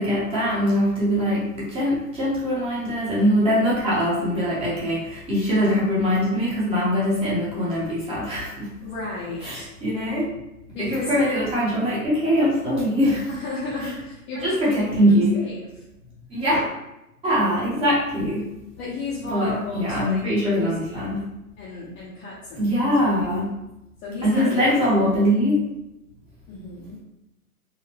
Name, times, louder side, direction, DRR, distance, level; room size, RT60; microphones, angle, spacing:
voice 1, 0.0-8.7 9.4-10.3 10.8-13.3 13.8-13.9 14.3-15.4 16.3-16.7 17.2-18.5 19.3-21.3 22.6-23.5 24.2-25.6, equal, 15° right, -7 dB, 0.9 m, -22 dB
voice 2, 8.8-9.7 10.7-11.1 13.3-15.7 18.8-21.2 21.6-22.8 23.2-23.4 24.0-24.7 26.5-27.0, left 2 dB, 15° left, -10 dB, 0.7 m, -34 dB
4.0 x 2.3 x 2.9 m, 0.90 s
figure-of-eight pair, 120°, 44 cm